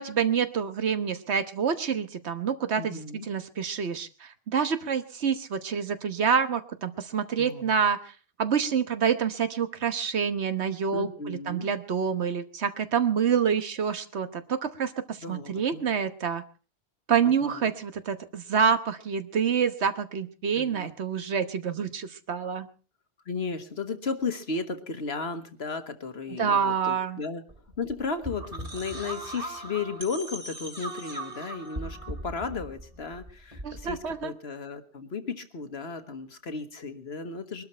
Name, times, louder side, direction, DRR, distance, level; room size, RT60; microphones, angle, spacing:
voice 1, 0.0-8.1 8.4-16.4 17.1-22.7 26.4-27.2 33.6-34.3, right 7 dB, 75° right, 10 dB, 1.4 m, -27 dB
voice 2, 2.8-3.3 7.4-7.7 10.9-11.7 15.2-15.8 17.3-17.7 20.6-20.9 23.3-27.4 27.8-37.6, left 4 dB, 70° left, 8 dB, 1.7 m, -34 dB
sound 1, 27.5-34.2, right 1 dB, 35° right, 2.5 m, -39 dB
21.5 x 12.5 x 4.4 m, 0.38 s
omnidirectional pair, 1.1 m